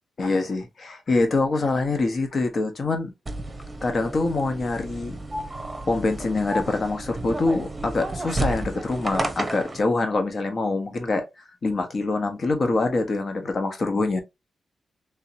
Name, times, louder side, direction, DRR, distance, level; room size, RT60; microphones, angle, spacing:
voice 1, 0.2-3.1 3.8-5.2 5.9-11.2 11.6-14.2, left 3 dB, 55° left, 1.1 m, -25 dB
sound 1, 3.3-9.8, right 2 dB, 25° right, 0.9 m, -32 dB
3.6 x 2.8 x 2.7 m
cardioid pair, 65°, 0 cm